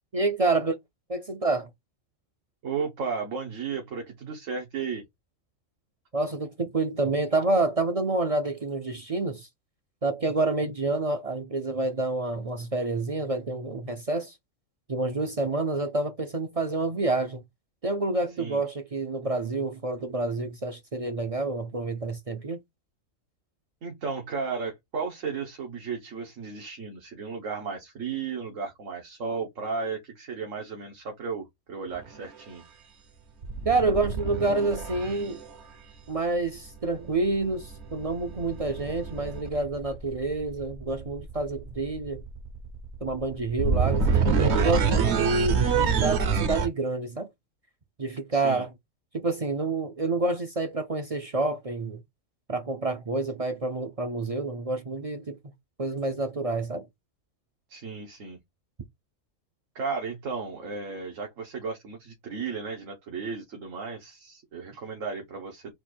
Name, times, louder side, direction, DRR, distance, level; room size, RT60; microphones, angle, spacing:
voice 1, 0.1-0.8 1.1-1.7 6.1-9.5 10.0-14.4 14.9-17.4 17.8-22.6 33.7-35.4 36.1-42.2 43.0-47.3 48.0-48.7 49.1-52.0 52.5-55.4 55.8-56.9, right 3 dB, 40° right, 0.5 m, -28 dB
voice 2, 2.6-5.0 18.4-18.6 23.8-32.6 48.3-48.6 57.7-58.4 59.7-65.7, right 5 dB, 85° right, 1.5 m, -34 dB
sound 1, 31.9-32.2 33.4-35.5 37.4-46.7, right 5 dB, 60° right, 1.1 m, -27 dB
4.3 x 2.5 x 4.3 m
omnidirectional pair, 1.3 m